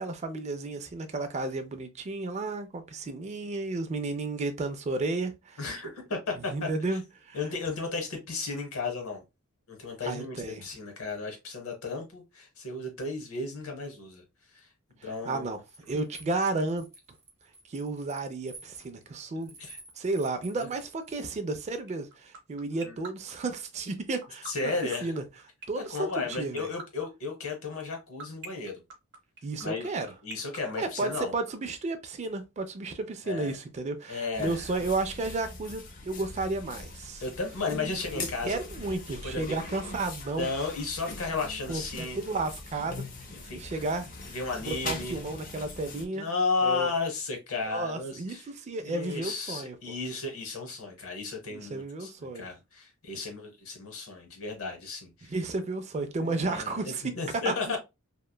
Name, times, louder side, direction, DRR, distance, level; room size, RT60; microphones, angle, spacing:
voice 1, 0.0-5.6 6.5-7.4 10.0-10.6 15.3-15.6 15.9-16.9 17.7-19.6 20.0-24.7 25.0-25.2 25.7-26.1 26.4-26.7 29.4-30.1 30.8-37.2 38.1-40.5 41.7-43.0 43.6-44.1 44.7-46.3 46.6-46.9 47.7-49.8 51.5-52.5 55.3-57.0 57.5-57.8, right 2 dB, 30° right, 0.4 m, -32 dB
voice 2, 5.6-7.0 7.3-9.2 9.7-14.2 14.5-14.7 15.0-15.5 19.3-19.8 20.6-20.7 22.8-23.0 24.4-25.1 25.7-28.8 29.6-31.3 33.2-33.5 34.1-34.7 37.2-38.6 39.2-39.6 40.4-42.2 43.4-43.6 44.3-45.2 46.1-48.5 48.8-55.4 56.0-57.8, left 3 dB, 70° left, 1.0 m, -34 dB
sound 1, 15.7-21.2, right 3 dB, 15° right, 0.9 m, -50 dB
sound 2, 21.9-31.5, right 5 dB, 55° right, 0.8 m, -42 dB
sound 3, 34.3-46.1, left 3 dB, 40° left, 0.5 m, -42 dB
2.8 x 2.2 x 2.2 m
head